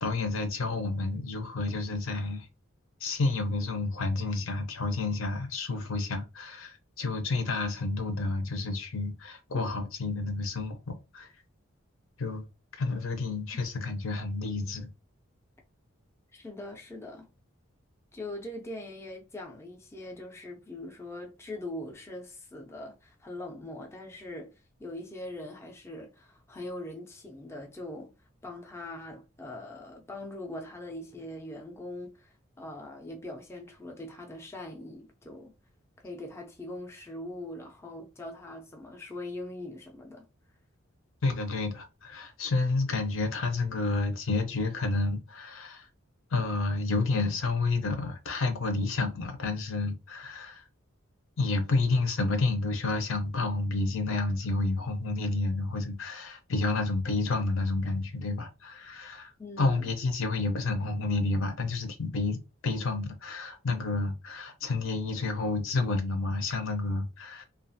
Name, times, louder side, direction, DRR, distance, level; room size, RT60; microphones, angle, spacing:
voice 1, 0.0-2.5 3.0-11.3 12.2-12.5 12.8-14.9 41.2-45.9 46.3-50.6 51.4-59.3 59.6-67.4, left 3 dB, 75° left, 0.6 m, -30 dB
voice 2, 16.3-17.3 18.1-28.1 28.4-35.5 36.0-40.3 59.4-59.9, left 1 dB, 10° left, 0.4 m, -42 dB
2.4 x 2.3 x 2.6 m
head